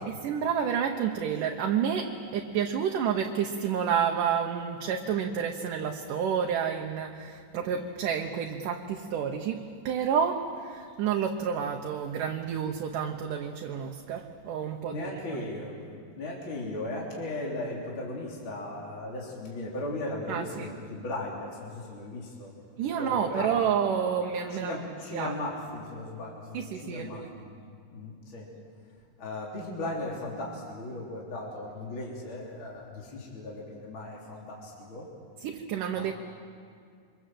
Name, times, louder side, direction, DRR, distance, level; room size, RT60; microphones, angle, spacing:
voice 1, 0.2-15.1 20.3-20.8 22.8-24.8 25.1-25.4 26.5-27.3 35.4-36.1, right 7 dB, 70° right, 3 dB, 2.5 m, -29 dB
voice 2, 14.8-15.8 16.1-22.5 22.9-23.6 24.5-27.6 27.9-28.5 29.2-35.1 35.9-36.1, left 2 dB, 35° left, -3 dB, 3.8 m, -37 dB
28.0 x 25.0 x 7.7 m, 2.3 s
omnidirectional pair, 4.1 m